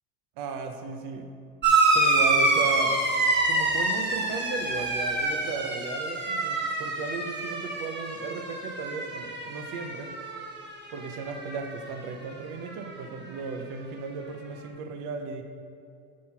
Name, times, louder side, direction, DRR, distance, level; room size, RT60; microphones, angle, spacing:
voice 1, 0.4-1.3 1.9-3.0 3.5-10.1 10.9-15.4, right 4 dB, 55° right, 5 dB, 0.8 m, -35 dB
sound 1, 1.6-10.6 10.9-11.7 12.8-12.9, right 2 dB, 30° right, 1.2 m, -26 dB
6.3 x 5.7 x 4.4 m, 2.4 s
supercardioid pair, 110°, 38 cm